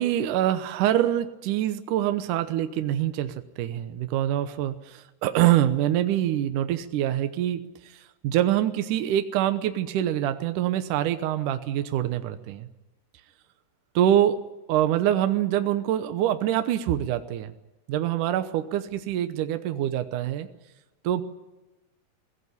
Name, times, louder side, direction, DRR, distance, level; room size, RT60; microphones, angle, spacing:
voice 1, 0.0-12.7 14.0-14.4 14.7-17.5 17.9-20.5 21.0-21.2, right 12 dB, 75° right, 9 dB, 1.9 m, -25 dB
22.0 x 17.0 x 9.6 m, 1.1 s
omnidirectional pair, 4.8 m